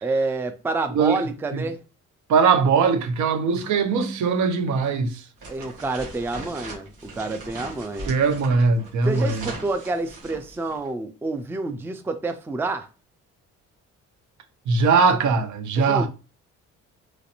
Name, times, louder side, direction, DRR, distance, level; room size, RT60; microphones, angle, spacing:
voice 1, 0.0-1.8 5.5-8.1 9.0-12.9 15.8-16.1, right 3 dB, 10° right, 0.4 m, -28 dB
voice 2, 2.3-5.2 8.1-9.4 14.7-16.1, right 5 dB, 70° right, 0.7 m, -20 dB
sound 1, 5.4-10.9, right 3 dB, 85° right, 1.4 m, -39 dB
3.1 x 2.5 x 2.8 m
cardioid pair, 90°, 30 cm